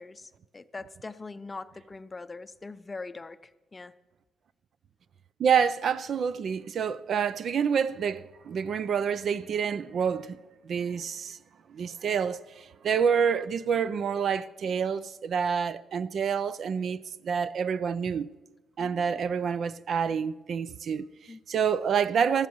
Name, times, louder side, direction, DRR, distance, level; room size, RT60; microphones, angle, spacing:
voice 1, 0.0-3.9 18.8-19.2 21.3-21.4, left 3 dB, 25° left, 0.5 m, -42 dB
voice 2, 5.4-10.4 10.6-11.4 11.7-18.3 18.8-21.1 21.5-22.5, right 7 dB, 60° right, 0.4 m, -28 dB
19.5 x 14.0 x 3.1 m
cardioid pair, 90°, 0 cm